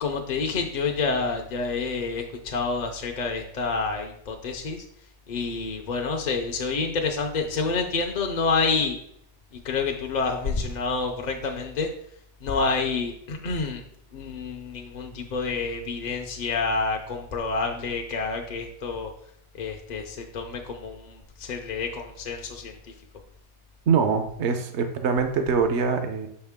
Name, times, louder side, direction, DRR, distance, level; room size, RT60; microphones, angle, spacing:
voice 1, 0.0-4.8 5.3-9.0 9.6-11.9 12.4-13.8 14.1-19.1 19.6-22.8, left 4 dB, 50° left, 3 dB, 0.6 m, -28 dB
voice 2, 23.9-26.3, right 5 dB, 75° right, 7 dB, 1.0 m, -23 dB
6.3 x 4.4 x 3.6 m, 0.72 s
omnidirectional pair, 1.2 m